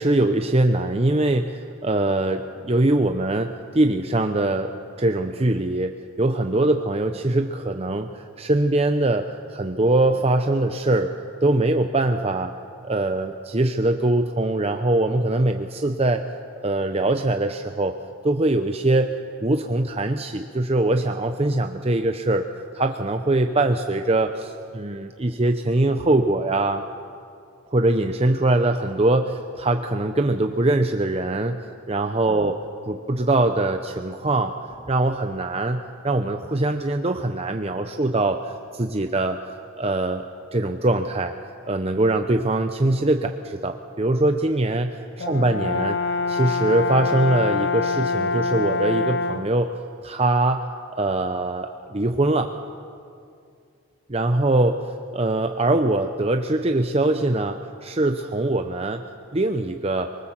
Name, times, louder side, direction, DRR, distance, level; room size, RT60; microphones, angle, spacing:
voice 1, 0.0-11.1 11.4-12.6 12.8-16.2 16.6-18.0 18.2-22.4 22.7-26.8 27.7-32.6 32.9-35.8 36.0-39.4 39.8-40.2 40.5-41.3 41.7-46.0 46.3-49.7 50.0-50.7 50.9-52.5 54.1-59.0 59.3-60.1, right 2 dB, 30° right, 6 dB, 0.8 m, -22 dB
Brass instrument, 45.2-49.6, left 4 dB, 55° left, 0.9 m, -25 dB
26.0 x 24.0 x 7.5 m, 2.4 s
head